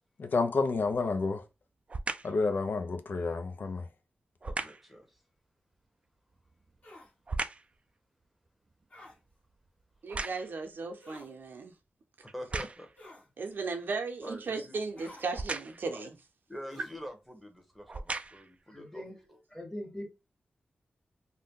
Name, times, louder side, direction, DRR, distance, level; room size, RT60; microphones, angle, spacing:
voice 1, 0.2-1.4 2.2-3.9, left 4 dB, 65° left, 0.4 m, -30 dB
sound 1, 0.7-1.1 1.9-2.4 4.4-4.9 6.3-7.8 8.2-10.7 11.4-11.5 12.3-13.0 15.3-15.9 16.9-17.1 17.7-18.6 19.2-19.3, right 3 dB, 35° right, 0.3 m, -38 dB
voice 2, 4.4-5.2 12.2-12.9 14.2-14.7 16.5-19.1, equal, ahead, 0.9 m, -45 dB
sound 2, 6.8-7.1 8.9-9.2 11.0-11.3 13.0-13.3 15.0-15.3 16.7-17.0, left 2 dB, 45° left, 1.3 m, -51 dB
voice 3, 10.0-11.7 13.4-16.2, right 4 dB, 70° right, 0.6 m, -36 dB
voice 4, 18.7-19.1 19.5-20.1, left 1 dB, 15° left, 1.3 m, -41 dB
2.6 x 2.2 x 3.6 m
cardioid pair, 65°, 3 cm